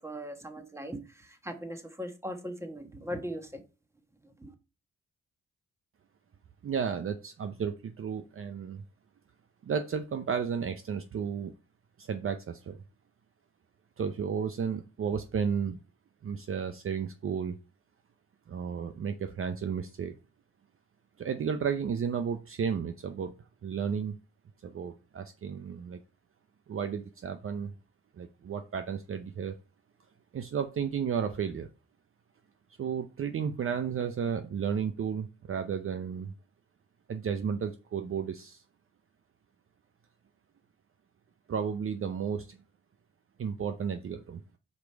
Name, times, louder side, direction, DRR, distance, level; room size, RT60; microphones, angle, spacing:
voice 1, 0.0-3.6 4.2-4.5, equal, 10° right, 5 dB, 1.4 m, -39 dB
voice 2, 6.6-8.8 9.6-11.5 12.0-12.8 14.0-15.8 16.2-17.6 18.5-20.1 21.2-23.3 23.6-24.2 24.6-26.0 26.7-27.7 28.2-29.6 30.3-31.7 32.8-36.3 37.1-38.6 41.5-42.6 43.4-44.4, right 7 dB, 45° right, 8 dB, 0.6 m, -33 dB
5.2 x 4.8 x 4.6 m, 0.32 s
cardioid pair, 80°, 30 cm